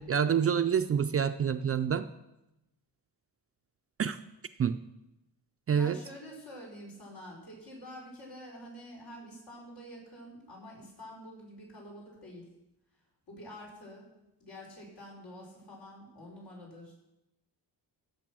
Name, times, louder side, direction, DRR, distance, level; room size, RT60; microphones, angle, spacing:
voice 1, 0.0-2.1 4.0-4.2 4.6-4.8 5.7-6.0, right 7 dB, 35° right, 9 dB, 0.4 m, -27 dB
voice 2, 5.7-12.5 13.3-14.1 14.4-16.9, equal, 70° left, -3 dB, 5.4 m, -47 dB
15.5 x 6.9 x 6.2 m, 0.92 s
wide cardioid pair, 140°, 42 cm